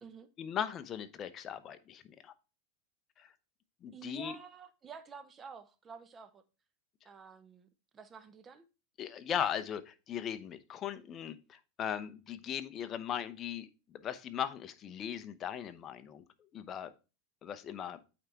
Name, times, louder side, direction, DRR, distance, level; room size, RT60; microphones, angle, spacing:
voice 1, 0.4-2.3 3.2-3.3 3.8-4.4 9.0-16.2 16.5-16.9 17.4-18.0, left 9 dB, 30° left, 0.7 m, -38 dB
voice 2, 3.9-6.4 7.0-8.7, right 5 dB, 20° right, 0.8 m, -50 dB
8.7 x 3.5 x 4.4 m
supercardioid pair, 140°, 0 cm